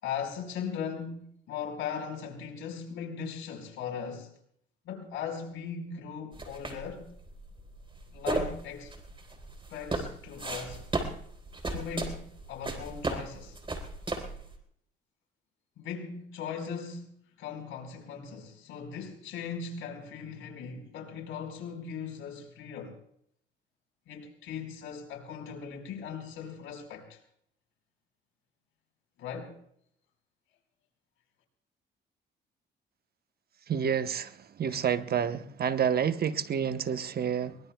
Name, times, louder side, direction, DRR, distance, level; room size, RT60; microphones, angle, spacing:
voice 1, 0.0-4.3 4.8-7.1 8.1-8.9 9.7-10.9 11.7-13.6 15.8-17.1 17.4-23.0 24.1-27.2 29.2-29.6, left 7 dB, 90° left, 4.7 m, -39 dB
sound 1, 6.3-14.6, right 2 dB, 25° right, 3.8 m, -35 dB
voice 2, 33.7-37.6, right 8 dB, 50° right, 1.0 m, -29 dB
23.5 x 21.5 x 2.3 m
cardioid pair, 90°, 20 cm